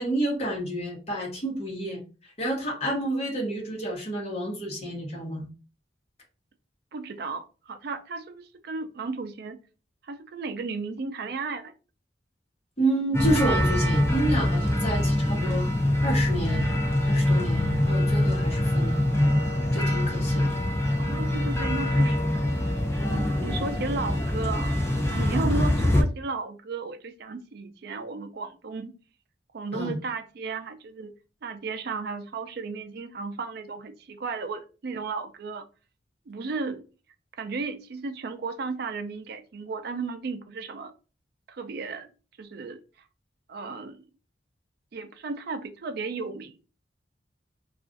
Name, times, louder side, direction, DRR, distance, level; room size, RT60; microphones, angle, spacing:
voice 1, 0.0-5.5 12.8-15.7 16.0-16.7 17.0-19.0 19.7-20.5 25.5-25.7 29.7-30.0, right 1 dB, 35° left, 1.0 m, -29 dB
voice 2, 6.9-9.6 10.0-11.7 21.0-22.5 23.0-28.9 29.5-31.1 31.4-35.6 36.3-36.8 37.4-40.9 41.5-42.1 42.4-42.8 43.5-44.0 44.9-46.6, right 4 dB, 60° right, 0.4 m, -34 dB
sound 1, 13.1-26.0, left 1 dB, 15° left, 0.5 m, -24 dB
2.4 x 2.3 x 3.7 m
head